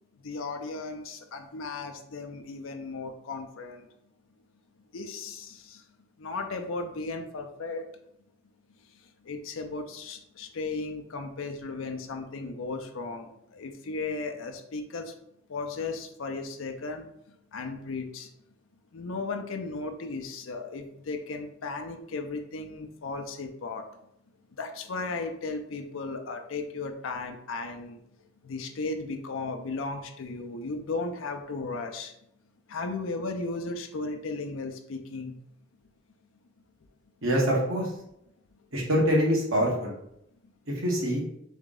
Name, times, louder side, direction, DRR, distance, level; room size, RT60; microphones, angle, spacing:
voice 1, 0.2-3.9 4.9-5.8 6.2-7.8 9.3-15.1 15.5-17.1 17.5-18.3 18.9-23.8 24.6-28.0 28.4-32.1 32.7-35.3, left 3 dB, 85° left, 5 dB, 0.5 m, -35 dB
voice 2, 37.2-37.9 38.7-39.9 40.8-41.2, equal, 90° right, -3 dB, 1.5 m, -24 dB
3.7 x 3.5 x 3.9 m, 0.76 s
head